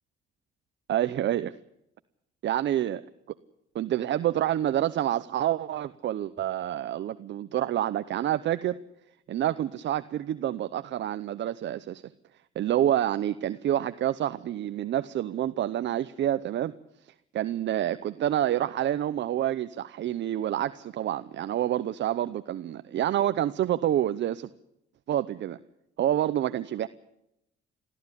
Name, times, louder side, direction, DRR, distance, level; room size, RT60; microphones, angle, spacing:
voice 1, 0.9-1.5 2.4-3.0 3.7-8.8 9.3-12.0 12.6-16.7 17.3-24.5 25.1-25.6 26.0-26.9, right 12 dB, 65° right, 13 dB, 0.8 m, -28 dB
22.5 x 14.5 x 9.9 m, 0.83 s
cardioid pair, 90°, 20 cm